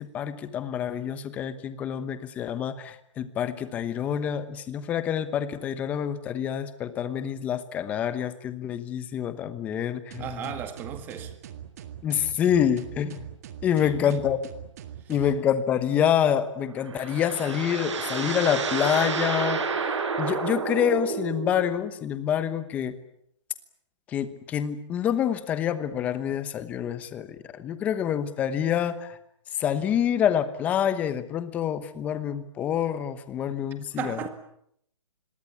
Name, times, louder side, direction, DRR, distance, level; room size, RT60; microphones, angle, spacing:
voice 1, 0.0-10.5 12.0-13.3 13.6-14.4 15.1-23.0 24.1-29.2 29.6-34.2, left 9 dB, 10° left, 1.0 m, -27 dB
sound 1, 10.1-15.4, right 10 dB, 30° right, 1.9 m, -42 dB
voice 2, 10.2-11.3 13.8-14.3 15.0-15.1 33.9-34.3, right 9 dB, 10° right, 1.9 m, -35 dB
sound 2, 16.6-21.8, right 5 dB, 65° right, 7.0 m, -30 dB
27.0 x 22.0 x 8.5 m
hypercardioid pair, 175°, 16 cm